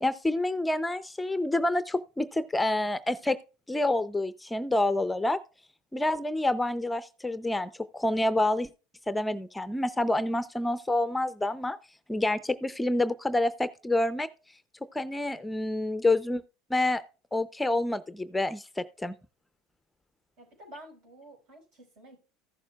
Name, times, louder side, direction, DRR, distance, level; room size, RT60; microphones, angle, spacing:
voice 1, 0.0-3.4 3.7-5.4 5.9-8.7 9.1-11.8 12.1-14.3 14.9-16.4 16.7-17.0 17.3-19.1, left 2 dB, 10° left, 0.5 m, -28 dB
voice 2, 20.4-22.2, right 1 dB, 65° right, 5.2 m, -50 dB
15.0 x 6.8 x 2.3 m
hypercardioid pair, 90°, 0 cm